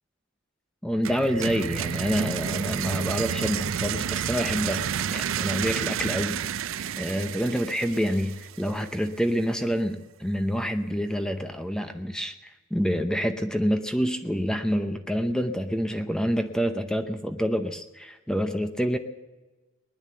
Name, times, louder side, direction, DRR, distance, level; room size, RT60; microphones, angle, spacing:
voice 1, 0.8-6.4 7.0-19.0, equal, 5° left, 7 dB, 0.7 m, -27 dB
sound 1, 1.0-8.8, right 8 dB, 80° right, 0.4 m, -30 dB
20.0 x 10.5 x 7.0 m, 1.2 s
head